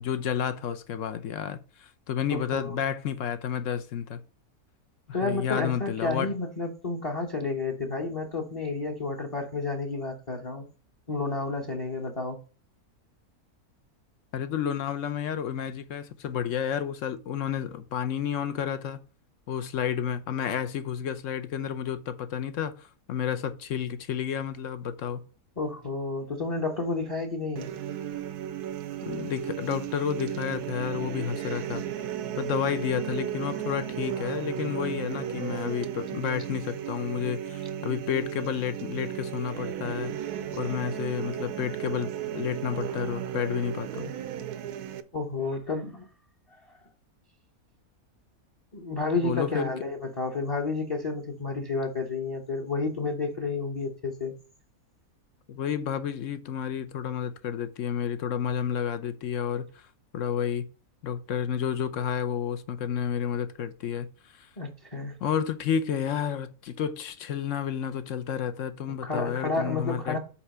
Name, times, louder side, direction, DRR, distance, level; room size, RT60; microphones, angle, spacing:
voice 1, 0.0-4.2 5.1-6.3 14.3-19.0 19.5-25.2 29.0-31.8 32.3-40.1 40.5-44.1 49.2-49.7 55.5-59.9 60.1-60.7 61.0-64.1 64.3-64.5 65.2-70.2, left 8 dB, 60° left, 1.0 m, -31 dB
voice 2, 2.3-2.8 5.1-10.7 11.1-12.4 25.6-27.7 45.1-46.1 46.7-46.8 48.7-54.3 64.6-65.2 69.0-70.2, left 3 dB, 25° left, 1.0 m, -31 dB
sound 1, 27.6-45.0, right 10 dB, 85° right, 1.2 m, -35 dB
5.8 x 4.8 x 5.5 m
omnidirectional pair, 1.6 m